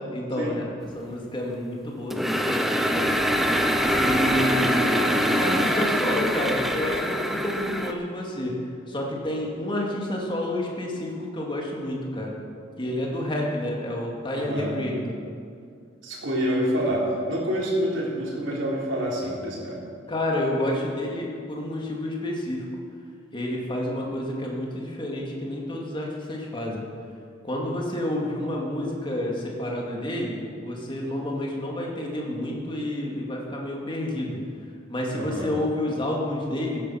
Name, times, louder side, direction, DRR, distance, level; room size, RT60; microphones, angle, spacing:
voice 1, 0.1-0.7 0.9-3.1 4.0-8.6 8.9-12.4 12.8-15.2 20.1-22.7 23.3-26.9 27.4-34.4 34.9-36.8, left 1 dB, 25° left, -2 dB, 2.4 m, -29 dB
sound 1, 2.1-7.9, equal, ahead, 0.7 m, -24 dB
voice 2, 14.3-14.7 16.0-19.8 35.1-35.5, equal, 85° right, -4 dB, 3.6 m, -27 dB
15.5 x 10.0 x 5.8 m, 2.3 s
head